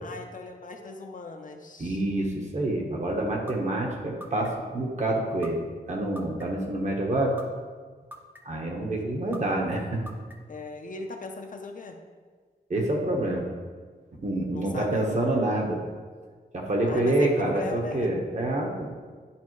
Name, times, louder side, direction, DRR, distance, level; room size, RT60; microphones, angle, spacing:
voice 1, 0.0-2.0 9.0-9.1 10.5-12.0 14.5-15.1 16.9-18.1, left 3 dB, 50° left, 4 dB, 0.6 m, -38 dB
voice 2, 1.8-5.6 5.9-7.3 8.4-10.0 12.7-13.4 14.2-15.8 16.5-18.9, right 1 dB, 45° right, 0 dB, 1.2 m, -27 dB
sound 1, 3.5-3.6 4.2-4.7 5.4-5.5 6.2-6.7 7.4-7.5 8.1-8.6 9.3-9.4 10.1-10.6, equal, 10° right, 0.6 m, -42 dB
10.5 x 4.2 x 3.2 m, 1.5 s
wide cardioid pair, 140°, 17 cm